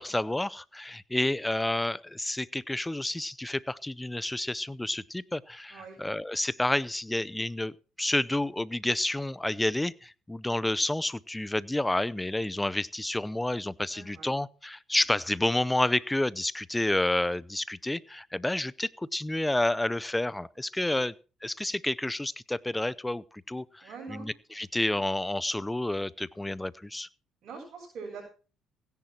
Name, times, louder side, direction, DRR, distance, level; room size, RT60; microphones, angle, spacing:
voice 1, 0.0-21.1 21.4-27.1, left 1 dB, 10° left, 0.7 m, -30 dB
voice 2, 13.9-14.3 20.8-21.0 23.8-24.6 27.4-28.2, right 4 dB, 60° right, 6.9 m, -44 dB
16.5 x 10.5 x 4.5 m
cardioid pair, 90°, 0 cm